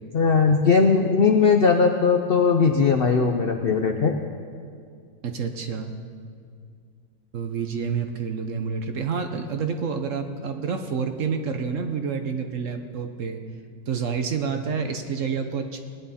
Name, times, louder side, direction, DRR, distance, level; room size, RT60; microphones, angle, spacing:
voice 1, 0.1-4.1, left 5 dB, 90° left, 4 dB, 0.5 m, -19 dB
voice 2, 5.2-5.9 7.3-13.4 13.9-15.8, right 6 dB, 55° right, 6 dB, 1.0 m, -28 dB
19.5 x 10.5 x 4.2 m, 2.2 s
omnidirectional pair, 1.9 m